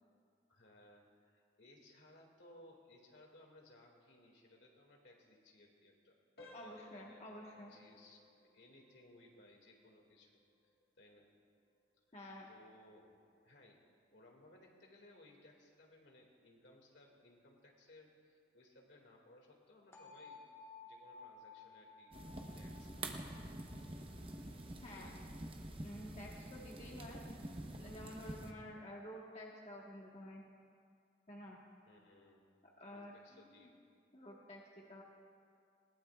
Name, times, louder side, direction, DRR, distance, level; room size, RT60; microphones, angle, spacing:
voice 1, 0.5-6.2 6.6-7.3 7.6-10.3 10.6-11.3 12.5-13.8 14.1-20.5 20.8-22.1 22.6-23.3 24.9-25.3 31.8-32.4 32.9-33.7, left 1 dB, 75° left, 0 dB, 2.2 m, -63 dB
sound 1, 6.4-17.0 17.4-17.6 18.2-18.3 18.8-19.0, left 2 dB, 55° left, 1.6 m, -65 dB
voice 2, 6.5-7.7 12.1-12.5 24.8-25.1 25.8-27.2 27.8-30.4 31.3-31.6 32.8-33.7 34.1-35.0, left 1 dB, 35° left, -2 dB, 1.4 m, -51 dB
sound 2, 19.9-25.8, left 4 dB, 15° left, 1.4 m, -58 dB
sound 3, 22.1-28.5, right 1 dB, 30° right, 0.9 m, -47 dB
20.5 x 18.5 x 2.4 m, 2.3 s
head